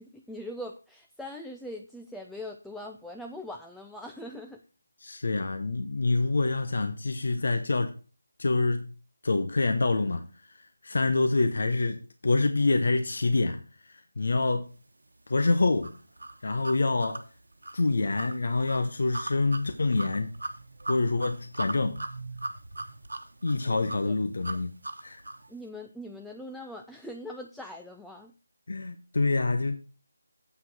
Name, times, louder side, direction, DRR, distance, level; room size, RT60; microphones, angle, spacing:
voice 1, 0.0-4.6 24.0-24.1 25.5-28.3, left 1 dB, ahead, 0.4 m, -41 dB
voice 2, 5.0-7.9 8.4-8.9 9.2-10.2 10.5-14.7 15.3-15.9 16.4-17.2 17.7-20.3 20.9-22.0 23.4-24.7 25.0-25.2 28.7-29.8, left 3 dB, 60° left, 0.9 m, -26 dB
sound 1, 15.4-25.5, right 2 dB, 80° right, 1.2 m, -39 dB
8.1 x 5.8 x 6.0 m
figure-of-eight pair, 165°, 0 cm